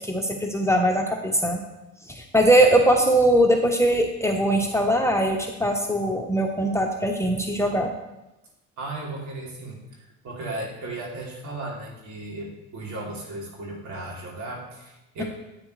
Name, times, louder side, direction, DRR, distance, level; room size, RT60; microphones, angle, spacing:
voice 1, 0.1-1.6 2.1-7.9, right 1 dB, 10° left, 1 dB, 0.9 m, -21 dB
voice 2, 8.8-9.8 10.2-15.2, right 2 dB, 55° right, -2 dB, 3.1 m, -35 dB
9.5 x 9.0 x 3.3 m, 0.96 s
supercardioid pair, 85°, 34 cm